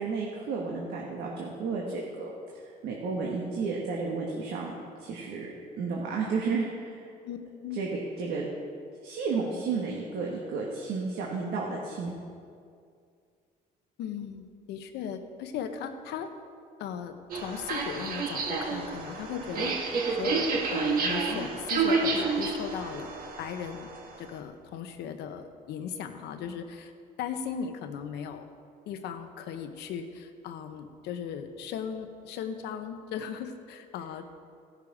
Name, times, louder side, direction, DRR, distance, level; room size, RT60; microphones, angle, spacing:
voice 1, 0.0-2.3 2.6-4.7 5.0-5.5 5.8-7.1 7.7-7.9 8.2-8.4 9.0-12.1, right 4 dB, 75° right, -2 dB, 1.6 m, -32 dB
voice 2, 7.2-7.8 14.0-16.3 16.8-23.9 24.2-26.9 27.2-28.5 28.9-34.3, left 7 dB, 80° left, 7 dB, 1.0 m, -37 dB
sound 1, 17.3-24.1, right 4 dB, 60° right, 1.7 m, -29 dB
16.0 x 6.8 x 4.9 m, 2.3 s
cardioid pair, 110°, 17 cm